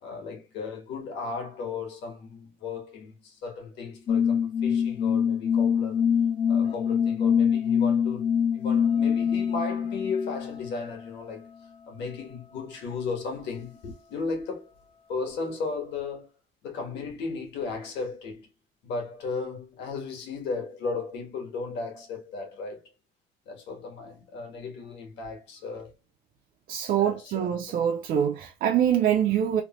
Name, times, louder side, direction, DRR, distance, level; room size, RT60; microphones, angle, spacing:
voice 1, 0.0-6.0 6.5-11.5 11.9-14.7 15.1-16.3 16.6-18.5 18.8-22.8 23.4-25.9 27.0-27.8, left 4 dB, 60° left, 1.3 m, -35 dB
sound 1, 4.1-11.1, left 7 dB, 25° left, 0.3 m, -24 dB
voice 2, 26.7-29.6, right 9 dB, 45° right, 0.4 m, -24 dB
3.1 x 2.1 x 2.8 m
cardioid pair, 165°, 20 cm